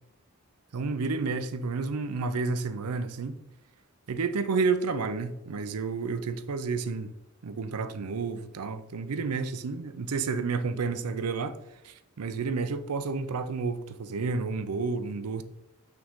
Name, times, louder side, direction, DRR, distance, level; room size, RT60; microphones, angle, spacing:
voice 1, 0.7-3.4 4.1-7.1 7.4-11.6 11.8-15.4, right 4 dB, 90° right, 0.5 m, -30 dB
8.7 x 3.8 x 3.6 m
head